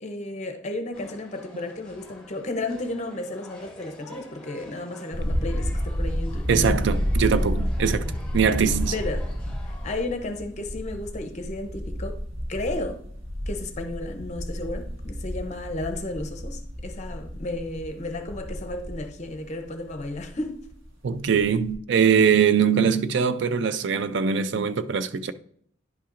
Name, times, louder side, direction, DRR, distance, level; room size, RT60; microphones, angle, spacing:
voice 1, 0.0-6.9 8.9-9.3 9.6-12.2 12.5-13.0 13.5-20.7, left 2 dB, 35° left, 0.7 m, -33 dB
sound 1, 0.9-10.0, left 1 dB, 5° left, 1.9 m, -48 dB
sound 2, 5.1-20.9 21.2-21.7, equal, 90° right, 1.5 m, -30 dB
voice 2, 6.5-8.1 8.3-8.9 21.0-25.3, right 6 dB, 65° right, 0.4 m, -22 dB
10.5 x 5.7 x 2.5 m
head